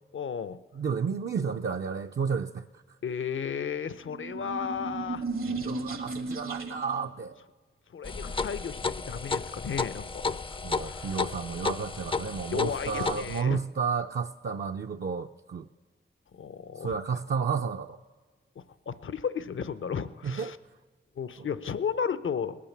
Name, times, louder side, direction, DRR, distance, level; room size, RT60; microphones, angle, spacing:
voice 1, 0.1-0.6 3.0-5.3 7.9-11.2 12.5-13.6 16.3-17.0 18.6-20.6 21.2-22.6, left 7 dB, 70° left, 15 dB, 0.7 m, -34 dB
voice 2, 0.8-2.6 5.5-7.4 10.6-15.7 16.8-18.0 20.2-20.6 21.4-21.5, right 6 dB, 55° right, 5 dB, 0.5 m, -32 dB
sound 1, 4.1-7.0, right 3 dB, 80° right, 1.6 m, -35 dB
sound 2, 8.0-13.4, left 4 dB, 25° left, 0.4 m, -33 dB
19.0 x 8.5 x 7.2 m, 1.4 s
cardioid pair, 55°, 21 cm